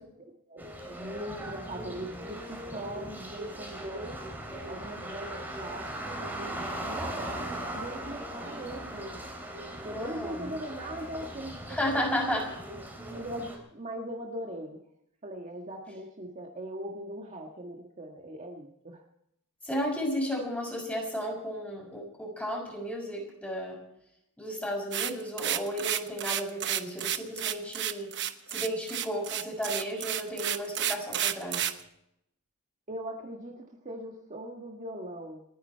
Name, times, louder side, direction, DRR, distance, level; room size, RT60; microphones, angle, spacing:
voice 1, 0.2-4.2 4.7-9.1 9.8-11.6 11.9-12.4 13.1-14.8 15.2-19.0 32.9-35.4, right 1 dB, 35° right, 1 dB, 1.5 m, -40 dB
sound 1, 0.6-13.6, right 1 dB, 10° right, 3.4 m, -39 dB
voice 2, 9.9-10.5 11.7-12.5 19.6-23.8 24.4-28.1 28.5-31.6, equal, 5° left, -1 dB, 6.2 m, -33 dB
sound 2, 24.9-31.8, right 11 dB, 55° right, 1.0 m, -31 dB
29.0 x 10.0 x 4.5 m, 0.79 s
head